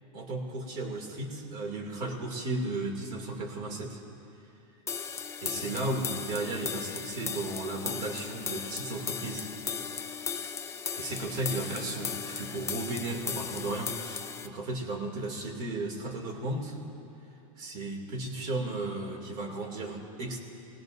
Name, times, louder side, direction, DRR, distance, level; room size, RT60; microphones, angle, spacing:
voice 1, 0.1-4.0 5.4-9.5 10.9-16.8 17.6-20.4, right 2 dB, 50° right, 2 dB, 2.7 m, -35 dB
sound 1, 4.9-14.5, left 6 dB, 15° left, 0.6 m, -36 dB
24.5 x 19.5 x 2.7 m, 2.8 s
supercardioid pair, 135°, 17 cm